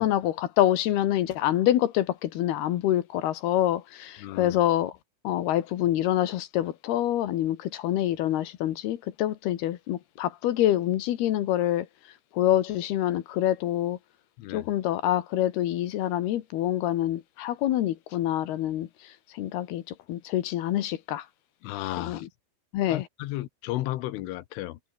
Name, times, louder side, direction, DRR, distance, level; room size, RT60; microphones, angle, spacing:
voice 1, 0.0-4.9 5.2-11.9 12.3-14.0 14.5-21.3 22.0-22.3 22.7-23.1, left 12 dB, 65° left, 2.9 m, -26 dB
voice 2, 4.2-4.6 14.4-14.7 21.6-22.3 22.9-24.8, left 16 dB, 85° left, 3.7 m, -34 dB
omnidirectional pair, 5.5 m